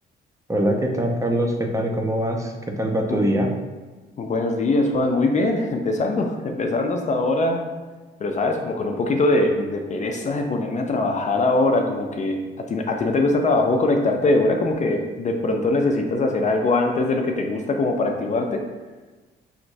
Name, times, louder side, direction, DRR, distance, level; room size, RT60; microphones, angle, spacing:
voice 1, 0.5-3.5, right 1 dB, 15° right, 2 dB, 0.6 m, -23 dB
voice 2, 4.2-7.6 8.2-12.4 12.7-18.6, left 2 dB, 35° left, 3 dB, 0.5 m, -22 dB
5.8 x 2.9 x 2.6 m, 1.3 s
cardioid pair, 90°, 20 cm